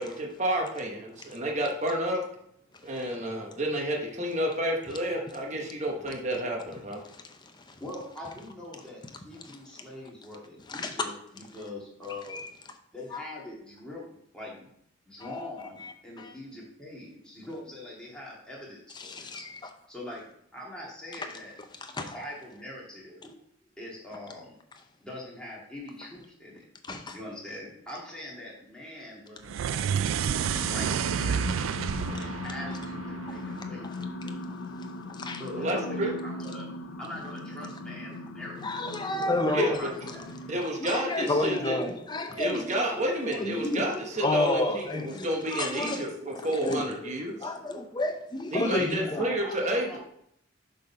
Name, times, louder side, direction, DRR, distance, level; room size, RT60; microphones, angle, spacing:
voice 1, 0.0-2.2 2.8-7.0 35.6-36.1 39.5-39.7 40.5-41.8 42.4-47.4 48.5-50.0, right 1 dB, 35° right, 1.1 m, -30 dB
voice 2, 7.0-7.8 10.7-11.1 12.1-12.5 13.1-13.2 15.2-15.5 15.8-16.3 19.0-19.7 21.8-22.2 26.8-27.2 30.1-30.5 33.8-33.9 35.1-35.4 38.6-39.8 40.8-42.9 43.3-43.9 44.2-46.1 46.6-46.8 47.4-49.3, left 2 dB, 20° left, 0.7 m, -31 dB
voice 3, 7.8-12.4 12.9-14.7 15.1-19.4 19.9-20.2 20.5-21.5 22.0-23.3 23.8-24.5 25.0-26.6 27.1-30.0 30.5-34.6 35.4-36.7 37.0-40.3 40.9-42.5 42.8-43.1 43.4-46.4 47.0-47.8 48.7-50.0, left 1 dB, 5° left, 2.2 m, -43 dB
sound 1, 29.4-33.8, right 8 dB, 80° right, 0.3 m, -30 dB
sound 2, 30.2-40.7, left 2 dB, 85° left, 0.7 m, -38 dB
6.7 x 3.9 x 5.5 m
head